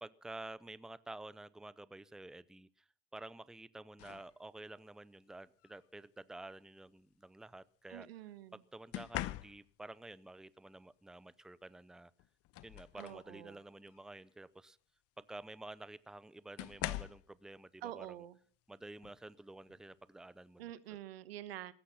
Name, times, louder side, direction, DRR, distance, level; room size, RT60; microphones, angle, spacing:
voice 1, 0.0-8.1 8.5-12.1 12.6-14.8 15.2-18.2 18.7-21.0, right 2 dB, ahead, 0.7 m, -51 dB
sound 1, 4.0-4.3 5.6-5.9 8.9-9.9 11.7-11.8 12.2-13.3 13.8-14.1 15.4-15.5 16.6-17.3 19.0-19.2 19.7-20.0, left 16 dB, 50° left, 0.9 m, -43 dB
voice 2, 7.9-8.6 12.9-13.6 17.8-18.4 20.6-21.7, right 13 dB, 85° right, 1.1 m, -47 dB
16.5 x 13.0 x 5.8 m
hypercardioid pair, 85°, 29 cm